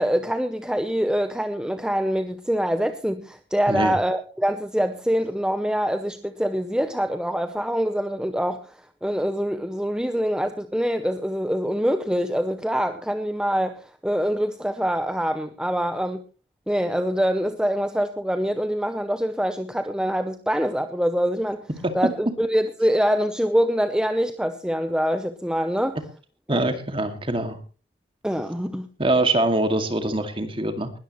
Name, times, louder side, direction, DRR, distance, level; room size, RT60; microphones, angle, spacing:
voice 1, 0.0-16.2 16.7-21.7 21.9-26.0 26.5-26.6 28.2-28.9, equal, 5° right, 0.7 m, -25 dB
voice 2, 26.5-27.6 29.0-30.9, right 2 dB, 30° right, 2.2 m, -23 dB
20.0 x 13.5 x 3.1 m
head